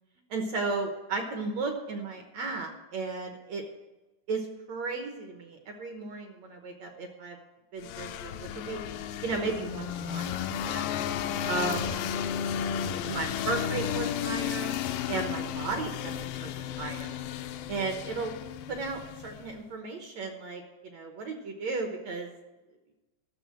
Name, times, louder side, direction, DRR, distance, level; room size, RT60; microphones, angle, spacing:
voice 1, 0.3-3.6 4.3-7.4 7.7-8.8 9.2-10.3 10.6-10.9 11.5-11.9 13.1-14.8 15.1-16.5 16.8-17.2 17.7-18.3 18.7-22.3, right 3 dB, 65° right, 4 dB, 1.8 m, -34 dB
sound 1, 7.8-19.6, left 9 dB, 80° left, 2.2 m, -33 dB
13.0 x 6.7 x 8.6 m, 1.1 s
omnidirectional pair, 4.4 m